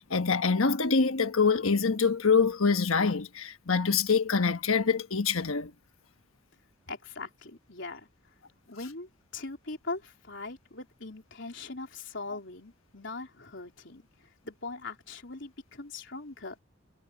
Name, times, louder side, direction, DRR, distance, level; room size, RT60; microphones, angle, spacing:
voice 1, 0.0-5.7, left 5 dB, 80° left, 1.3 m, -25 dB
voice 2, 6.9-8.1 8.7-14.0 14.5-16.6, left 3 dB, 60° left, 4.1 m, -41 dB
head